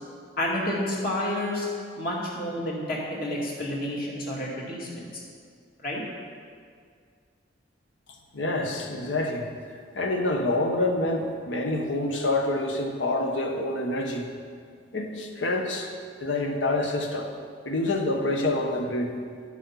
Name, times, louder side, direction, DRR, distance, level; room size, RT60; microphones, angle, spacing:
voice 1, 0.4-1.7 2.0-5.2 5.8-6.0, left 1 dB, 50° left, -4 dB, 2.2 m, -30 dB
voice 2, 8.3-9.5 9.9-14.3 14.9-15.9 16.2-17.3 17.6-19.1, left 2 dB, 75° left, 3 dB, 1.1 m, -27 dB
11.0 x 6.3 x 5.7 m, 2.1 s
head